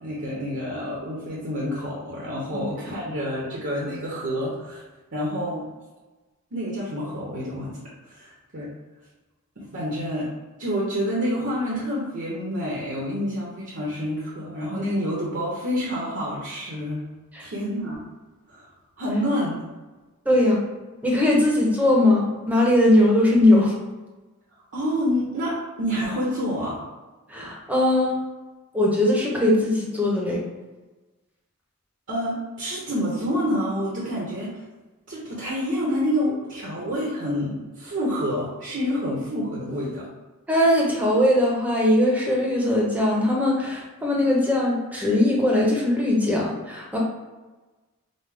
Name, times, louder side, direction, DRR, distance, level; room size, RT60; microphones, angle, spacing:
voice 1, 0.0-4.8 5.1-5.7 6.5-8.7 9.6-10.3 10.6-17.0 17.4-18.0 18.5-18.6 19.0-19.6 24.7-26.8 32.1-34.6 35.1-40.1, equal, 55° right, -5 dB, 0.9 m, -28 dB
voice 2, 20.3-20.6 21.0-23.7 27.3-28.2 28.7-30.4 40.5-47.0, left 1 dB, 5° right, -3 dB, 0.8 m, -20 dB
5.3 x 2.1 x 3.4 m, 1.2 s
head